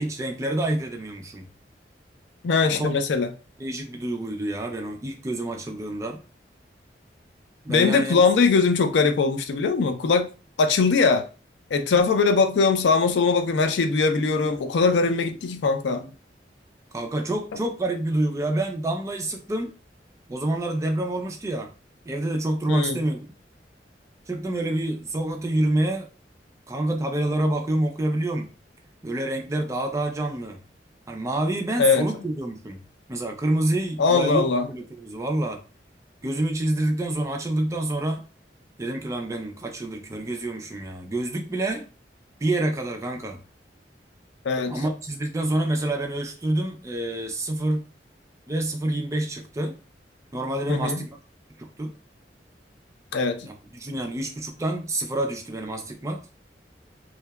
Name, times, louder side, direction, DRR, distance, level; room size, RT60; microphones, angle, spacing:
voice 1, 0.0-1.5 2.8-2.9 3.6-6.2 7.6-8.2 16.9-19.7 20.3-21.7 22.1-23.2 24.3-26.1 26.7-28.5 29.0-30.6 31.1-32.8 33.1-35.6 36.2-38.2 38.8-41.9 42.4-43.4 44.7-47.9 48.5-49.8 50.3-51.1 51.6-51.9 53.4-56.2, right 1 dB, 15° right, 0.3 m, -27 dB
voice 2, 2.4-3.3 7.7-10.3 10.6-11.2 11.7-16.1 22.7-23.0 31.8-32.0 34.0-34.7 44.4-44.7 50.7-51.0 53.1-53.4, left 4 dB, 85° left, 0.4 m, -21 dB
2.6 x 2.1 x 2.2 m
head